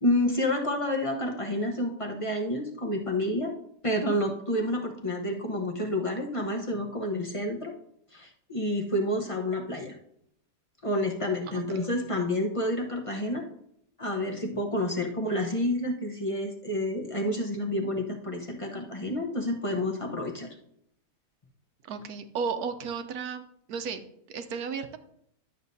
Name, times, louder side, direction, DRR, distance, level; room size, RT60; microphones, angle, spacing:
voice 1, 0.0-3.6 3.8-7.7 8.1-9.9 10.8-13.4 14.0-20.5, left 1 dB, 25° left, 1 dB, 0.7 m, -29 dB
voice 2, 21.8-23.4 23.7-25.0, right 5 dB, 70° right, 9 dB, 1.2 m, -34 dB
11.0 x 7.3 x 2.7 m, 0.71 s
omnidirectional pair, 1.8 m